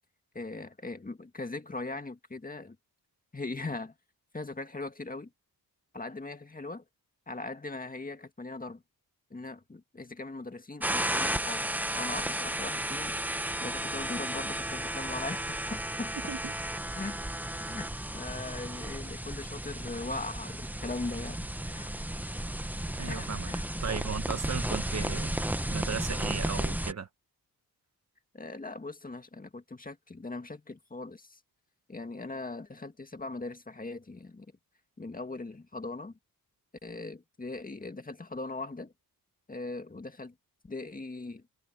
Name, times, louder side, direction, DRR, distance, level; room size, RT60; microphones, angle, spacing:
voice 1, 0.3-2.8 3.3-3.9 4.3-5.3 5.9-6.8 7.3-8.8 9.3-11.6 11.9-13.2 13.6-16.1 17.0-17.2 17.6-22.0 23.1-23.7 28.3-31.4 31.9-34.5 35.0-36.2 36.8-38.9 39.5-40.3 40.6-41.4, left 3 dB, 20° left, 2.0 m, -40 dB
sound 1, 10.8-26.9, right 1 dB, 5° right, 1.0 m, -33 dB
voice 2, 23.0-23.5 23.8-25.4 25.7-27.1, right 6 dB, 45° right, 1.4 m, -36 dB
cardioid pair, 105°, 37 cm